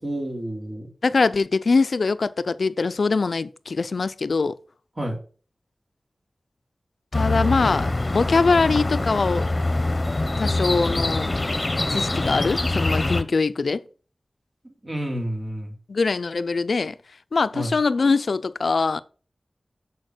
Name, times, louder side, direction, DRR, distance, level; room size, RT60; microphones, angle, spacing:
voice 1, 0.0-0.9 5.0-5.2 14.8-15.7 17.5-17.7, right 1 dB, 40° right, 3.4 m, -29 dB
voice 2, 1.0-4.6 7.1-9.5 10.4-11.3 11.9-13.8 15.9-17.0 17.3-19.0, left 4 dB, 80° left, 0.5 m, -22 dB
sound 1, 7.1-13.2, left 2 dB, 35° left, 1.0 m, -24 dB
7.1 x 6.5 x 6.2 m
wide cardioid pair, 85°, 0 cm